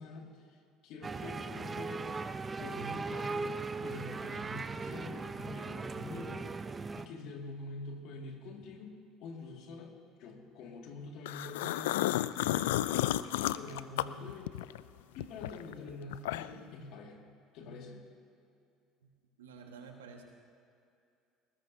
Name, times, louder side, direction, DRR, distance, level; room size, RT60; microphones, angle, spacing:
voice 1, 0.0-2.1 2.6-3.5 3.8-6.5 6.9-9.9 10.2-12.2 12.5-14.6 15.2-17.2 17.5-18.0, left 3 dB, 65° left, 2 dB, 2.2 m, -46 dB
sound 1, 1.0-7.1, right 4 dB, 25° right, 0.6 m, -38 dB
sound 2, 11.3-14.8 15.2-16.7, left 14 dB, 80° left, 0.3 m, -32 dB
voice 2, 19.4-20.2, right 5 dB, 85° right, 2 dB, 1.6 m, -50 dB
20.5 x 19.0 x 2.8 m, 2.5 s
hypercardioid pair, 70°, 0 cm